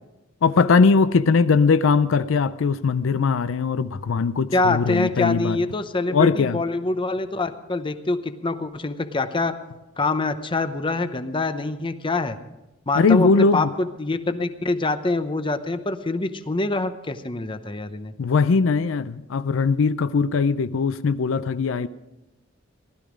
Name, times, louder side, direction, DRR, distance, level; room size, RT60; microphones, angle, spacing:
voice 1, 0.4-5.6 6.1-6.6 13.0-13.7 18.2-21.9, left 4 dB, 80° left, 14 dB, 0.5 m, -20 dB
voice 2, 4.5-9.5 10.0-12.4 12.9-18.1, left 2 dB, 25° left, 10 dB, 0.7 m, -25 dB
16.0 x 12.5 x 5.0 m, 0.99 s
head